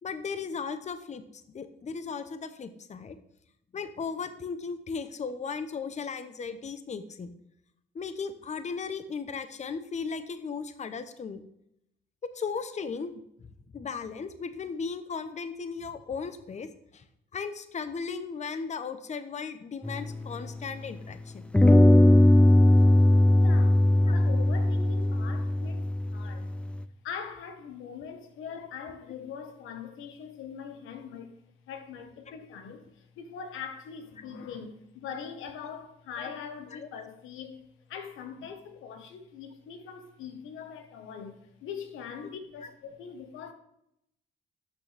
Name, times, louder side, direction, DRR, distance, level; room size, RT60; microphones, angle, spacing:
voice 1, 0.0-3.2 3.7-7.3 7.9-11.4 12.3-13.1 13.7-17.0 17.3-21.4 24.1-24.2 36.2-36.3 36.7-36.9 42.6-42.7, left 5 dB, 35° left, 0.8 m, -36 dB
sound 1, 19.8-21.0 21.5-26.8, left 1 dB, 5° left, 0.4 m, -20 dB
voice 2, 23.3-25.8 26.1-26.5 27.0-31.4 31.7-37.6 37.9-43.5, left 7 dB, 90° left, 1.3 m, -42 dB
12.0 x 6.4 x 3.4 m
cardioid pair, 90°, 20 cm